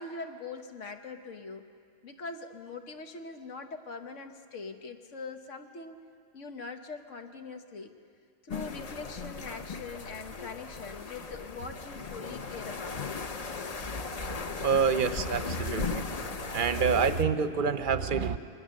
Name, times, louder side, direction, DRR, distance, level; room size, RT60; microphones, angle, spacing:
voice 1, 0.0-1.7 2.0-6.0 6.3-7.9 8.4-13.0, left 4 dB, 85° left, 6 dB, 1.5 m, -42 dB
sound 1, 8.5-17.2, left 4 dB, 35° left, 0.7 m, -37 dB
voice 2, 14.6-16.1 16.4-18.4, right 6 dB, 50° right, 11 dB, 0.8 m, -27 dB
23.5 x 20.0 x 6.5 m, 2.3 s
omnidirectional pair, 1.3 m